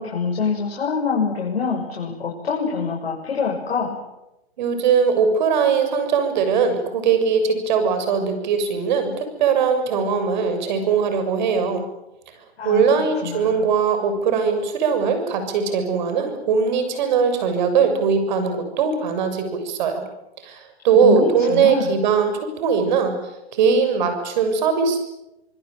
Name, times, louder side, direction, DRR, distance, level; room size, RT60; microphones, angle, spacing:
voice 1, 0.0-4.0 12.6-12.8 13.2-13.6 20.9-21.9, left 5 dB, 70° left, -1 dB, 7.3 m, -25 dB
voice 2, 4.6-11.8 12.6-20.0 20.4-20.6 20.8-23.2 23.5-25.0, right 6 dB, 45° right, 8 dB, 7.1 m, -20 dB
26.0 x 21.0 x 9.2 m, 0.93 s
hypercardioid pair, 150°, 31 cm